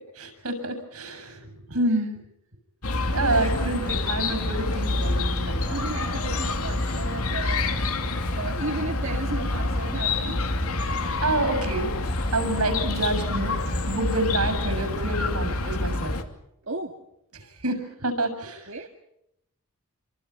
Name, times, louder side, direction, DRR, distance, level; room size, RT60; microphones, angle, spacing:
voice 1, 0.1-2.1 3.1-5.9 11.0-11.9 12.3-16.2 17.3-18.7, right 2 dB, 80° right, 9 dB, 7.1 m, -28 dB
Chirp tweet, 2.8-16.2, left 2 dB, 80° left, 2.7 m, -27 dB
voice 2, 3.1-3.9 4.2-4.4 5.7-7.7 8.3-10.4 16.7-17.0 18.7-18.9, right 2 dB, 60° right, 3 dB, 2.1 m, -34 dB
28.5 x 25.5 x 5.8 m, 0.81 s
head